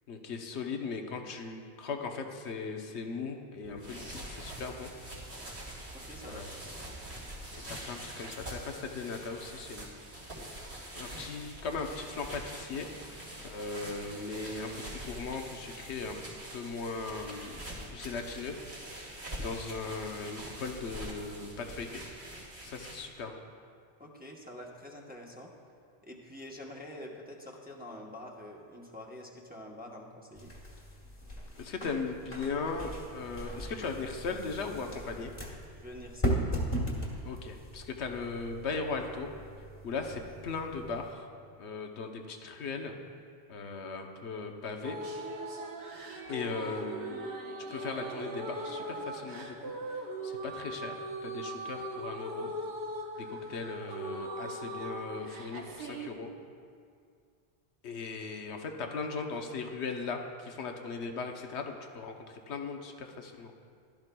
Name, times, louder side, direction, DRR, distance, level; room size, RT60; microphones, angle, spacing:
voice 1, 0.1-4.9 6.3-6.5 7.5-9.9 10.9-16.2 16.5-17.6 17.9-18.6 19.4-22.0 22.6-23.4 31.6-35.3 37.2-39.3 39.8-41.3 41.6-42.9 43.5-45.0 46.3-47.3 47.7-52.5 53.2-56.4 57.8-63.5, left 4 dB, 85° left, 4 dB, 1.1 m, -38 dB
sound 1, 3.6-23.2, right 1 dB, 85° right, 3.2 m, -44 dB
voice 2, 5.9-6.5 24.0-25.5 26.0-30.5 35.8-36.4 46.4-46.5, left 1 dB, 10° right, -2 dB, 0.9 m, -46 dB
sound 2, 30.4-41.1, right 1 dB, 40° left, 1.5 m, -38 dB
sound 3, 44.8-56.1, right 1 dB, 60° right, 1.2 m, -39 dB
15.0 x 12.0 x 2.2 m, 2.3 s
omnidirectional pair, 1.1 m